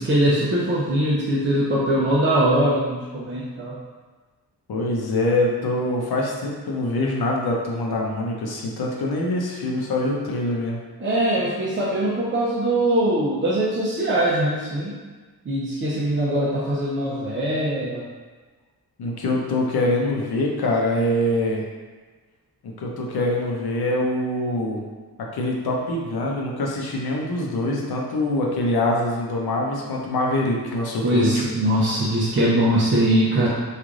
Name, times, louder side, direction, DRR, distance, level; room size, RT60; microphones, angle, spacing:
voice 1, 0.0-3.7 11.0-14.9 15.5-18.0 31.0-33.5, right 1 dB, 30° right, -8 dB, 0.5 m, -21 dB
voice 2, 4.7-10.8 19.0-21.7 22.6-24.8 25.3-31.4, left 1 dB, 70° left, -1 dB, 0.7 m, -24 dB
3.1 x 2.5 x 3.7 m, 1.4 s
wide cardioid pair, 160°, 39 cm